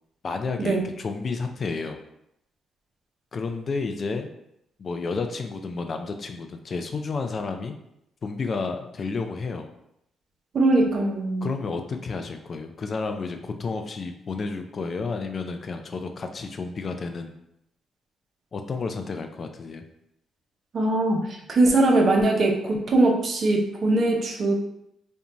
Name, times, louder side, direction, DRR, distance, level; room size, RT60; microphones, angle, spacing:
voice 1, 0.2-2.0 3.3-4.3 4.8-7.8 8.2-9.7 11.4-17.4 18.5-19.8, left 4 dB, 50° left, 6 dB, 0.3 m, -31 dB
voice 2, 10.5-11.5 20.7-24.5, right 2 dB, 55° right, 2 dB, 0.5 m, -21 dB
2.6 x 2.2 x 2.9 m, 0.80 s
supercardioid pair, 60°, 0 cm